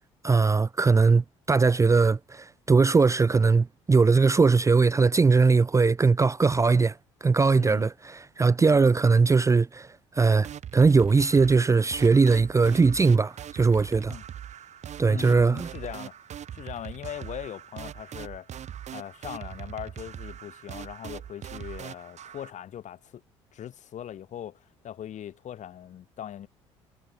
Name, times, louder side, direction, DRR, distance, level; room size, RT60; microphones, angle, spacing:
voice 1, 0.2-14.2 15.0-15.7, right 4 dB, 20° right, 0.6 m, -21 dB
voice 2, 7.5-7.9 14.0-14.2 15.0-16.2 16.5-18.6 18.9-23.2 23.5-26.5, left 10 dB, 50° left, 6.5 m, -40 dB
sound 1, 10.4-22.5, right 10 dB, 50° right, 2.9 m, -41 dB
hypercardioid pair, 55°, 15 cm